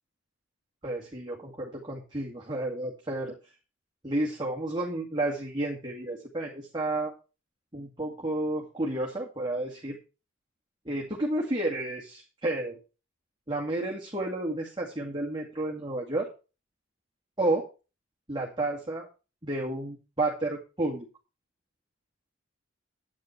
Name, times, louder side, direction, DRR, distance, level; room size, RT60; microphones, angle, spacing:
voice 1, 0.8-3.3 4.0-7.1 7.7-10.0 10.9-12.8 13.5-16.3 17.4-17.7 18.3-19.1 19.4-21.0, right 2 dB, 20° right, -3 dB, 2.3 m, -31 dB
11.5 x 8.9 x 4.5 m, 0.32 s
head